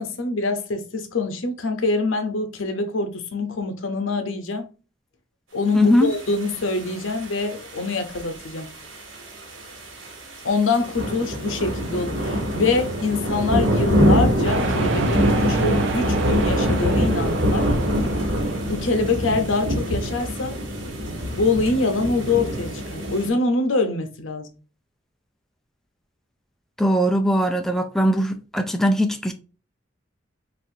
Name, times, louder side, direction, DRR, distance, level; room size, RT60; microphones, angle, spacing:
voice 1, 0.0-4.7 5.5-8.7 10.4-17.7 18.7-20.6 21.4-24.5, left 3 dB, 85° left, 0.7 m, -24 dB
voice 2, 5.7-6.1 26.8-29.3, equal, ahead, 0.3 m, -20 dB
sound 1, 6.1-23.3, equal, 85° right, 1.4 m, -25 dB
sound 2, 14.4-19.0, right 3 dB, 65° right, 0.6 m, -28 dB
4.1 x 2.5 x 2.7 m
head